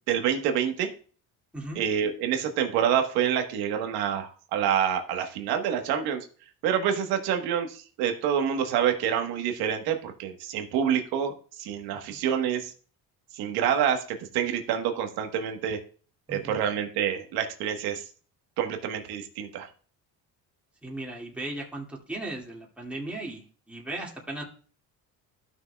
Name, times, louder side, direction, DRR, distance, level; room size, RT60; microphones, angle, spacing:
voice 1, 0.1-0.9 1.7-6.2 6.6-12.7 13.3-15.8 16.3-18.0 18.6-19.7, right 8 dB, 90° right, 5 dB, 1.4 m, -27 dB
voice 2, 16.3-16.6 20.8-24.4, right 2 dB, 5° right, -3 dB, 2.2 m, -37 dB
14.5 x 6.2 x 2.3 m, 0.41 s
cardioid pair, 105°, 36 cm